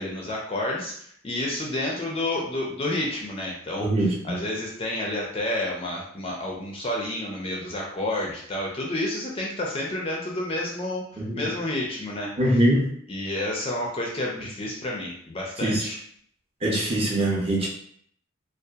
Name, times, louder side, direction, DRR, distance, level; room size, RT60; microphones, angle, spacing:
voice 1, 0.0-3.9 4.2-12.6 13.1-16.0, left 1 dB, 25° left, -2 dB, 0.4 m, -30 dB
voice 2, 3.8-4.1 11.2-11.5 12.4-12.9 15.6-15.8 16.6-17.7, right 1 dB, 25° right, -4 dB, 0.6 m, -22 dB
2.7 x 2.3 x 2.3 m, 0.63 s
head